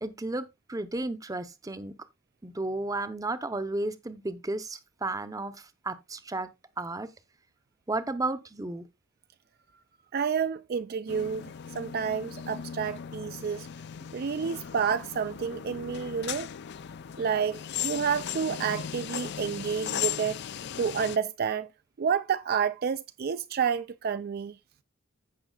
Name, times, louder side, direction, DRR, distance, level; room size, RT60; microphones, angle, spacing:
voice 1, 0.0-1.9 2.4-5.6 5.8-6.5 6.8-7.1 7.9-8.8, right 2 dB, 15° right, 0.7 m, -33 dB
voice 2, 10.1-13.7 14.1-16.5 17.2-20.4 20.8-21.7 22.0-24.6, right 6 dB, 50° right, 0.4 m, -29 dB
sound 1, 11.1-21.2, left 9 dB, 55° left, 0.4 m, -37 dB
15.5 x 5.9 x 2.3 m
head